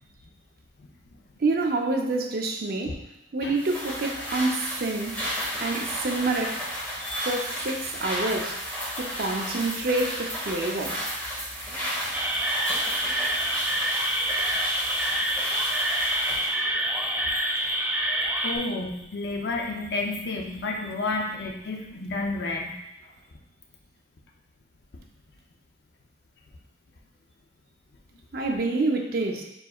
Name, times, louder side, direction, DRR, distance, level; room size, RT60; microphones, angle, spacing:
voice 1, 1.4-3.0 3.3-5.2 5.6-6.6 7.3-8.6 9.0-11.0 28.3-29.4, right 3 dB, 55° right, 2 dB, 0.6 m, -27 dB
sound 1, 3.6-16.5, equal, 10° left, 1.2 m, -33 dB
voice 2, 7.0-7.4 14.2-14.8 15.4-15.7 16.1-16.2 17.3-17.5 18.4-22.7, left 2 dB, 65° left, 0 dB, 0.5 m, -31 dB
sound 2, 12.1-18.6, right 1 dB, 10° right, 0.4 m, -27 dB
4.6 x 4.0 x 2.3 m, 0.86 s
head